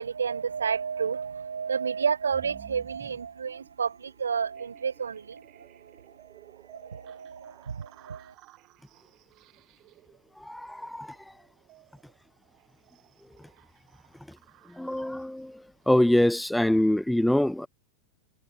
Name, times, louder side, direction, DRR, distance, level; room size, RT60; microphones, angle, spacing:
voice 1, 0.0-5.4 6.7-8.3, right 6 dB, 70° right, 1.9 m, -31 dB
sound 1, 2.3-16.4, right 18 dB, 40° right, 7.8 m, -55 dB
voice 2, 10.5-11.1 14.8-15.5 15.9-17.7, left 1 dB, 5° left, 0.6 m, -24 dB
figure-of-eight pair, 90°, 0 cm